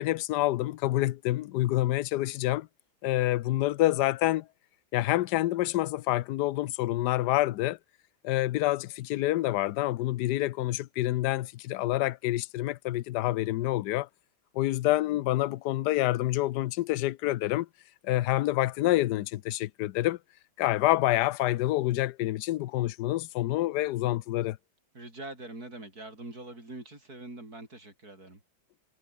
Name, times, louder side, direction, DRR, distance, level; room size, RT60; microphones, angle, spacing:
voice 1, 0.0-2.7 3.0-4.5 4.9-7.8 8.2-14.1 14.5-17.7 18.0-20.2 20.6-24.6, left 16 dB, 70° left, 1.1 m, -27 dB
voice 2, 24.9-28.4, right 2 dB, 45° right, 7.9 m, -43 dB
omnidirectional pair, 2.2 m